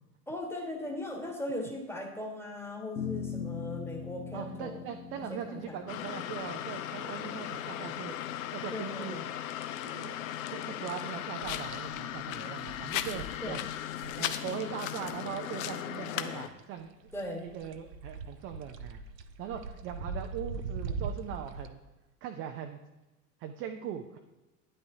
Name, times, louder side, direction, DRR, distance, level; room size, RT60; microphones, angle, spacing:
voice 1, 0.3-4.8 5.3-5.8 8.7-9.2 13.4-13.6 17.1-17.5, left 1 dB, 5° left, 2 dB, 1.4 m, -38 dB
sound 1, 3.0-9.5, left 6 dB, 85° left, 0.9 m, -42 dB
voice 2, 4.3-8.1 8.5-9.2 9.9-13.6 14.2-16.9 17.4-19.0 19.4-21.8 22.2-22.8 23.4-24.2, right 9 dB, 25° right, 5 dB, 0.4 m, -40 dB
sound 2, 5.9-16.5, left 11 dB, 55° left, 0.7 m, -37 dB
sound 3, 11.4-16.2 16.5-21.7, right 4 dB, 80° right, 0.7 m, -41 dB
9.9 x 8.8 x 2.7 m, 1.1 s
figure-of-eight pair, 85°, 48 cm